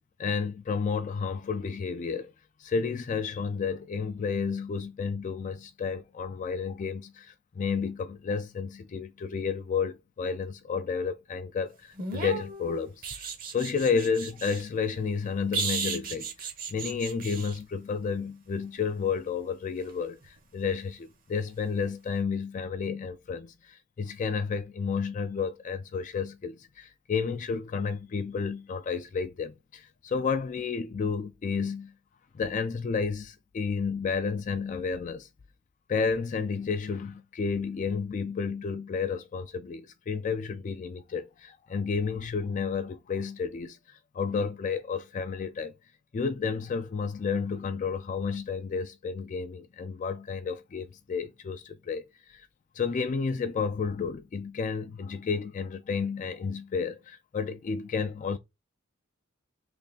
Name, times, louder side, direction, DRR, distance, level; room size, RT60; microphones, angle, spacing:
voice 1, 0.2-2.3 2.6-13.0 13.5-31.9 32.3-35.3 35.9-45.7 46.1-52.5 52.8-58.4, left 5 dB, 40° left, 0.3 m, -31 dB
sound 1, 11.9-14.6 15.5-17.6 20.2-20.4, right 5 dB, 45° right, 0.8 m, -35 dB
3.3 x 2.5 x 3.9 m
head